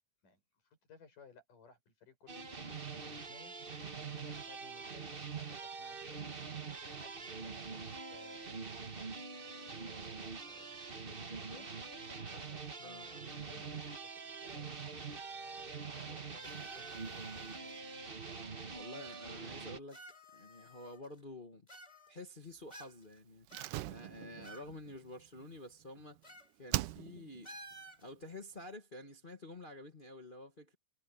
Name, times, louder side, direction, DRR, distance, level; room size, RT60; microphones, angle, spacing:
voice 1, 0.8-2.8 3.0-3.6 3.8-6.3 6.9-8.5 9.6-10.7 11.0-11.7 12.1-13.8 14.0-15.0 15.3-17.4, left 5 dB, 85° left, 8.4 m, -61 dB
sound 1, 2.3-19.8, right 5 dB, 50° right, 0.6 m, -44 dB
sound 2, 16.4-17.8 18.7-18.8 19.9-21.2 21.7-22.3 22.7-23.2 23.5-24.7 25.0-25.1 26.2-26.5 26.8-27.0 27.4-28.1, right 2 dB, 10° left, 4.0 m, -53 dB
voice 2, 18.7-20.0 20.3-21.7 22.1-23.5 23.9-26.2 26.6-27.5 28.0-30.7, left 2 dB, 60° left, 0.5 m, -49 dB
Slam, 23.5-26.2 26.7-27.5 27.7-27.8, right 17 dB, 85° right, 2.2 m, -40 dB
omnidirectional pair, 3.6 m